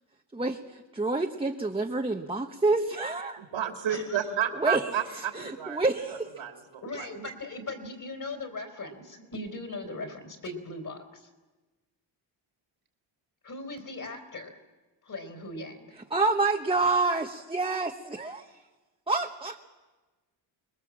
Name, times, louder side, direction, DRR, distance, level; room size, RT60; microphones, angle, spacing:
voice 1, 0.3-3.4 4.6-4.9 5.3-6.3 16.1-18.5 19.1-19.6, right 3 dB, 10° right, 2 dB, 1.1 m, -28 dB
voice 2, 3.4-5.8 6.1-7.0, right 9 dB, 75° right, 3 dB, 3.1 m, -31 dB
voice 3, 3.9-4.2 5.1-5.5 6.8-11.3 13.4-14.6 15.0-15.9, left 2 dB, 40° left, 5 dB, 4.2 m, -39 dB
25.0 x 21.0 x 7.5 m, 1.2 s
cardioid pair, 100°, 47 cm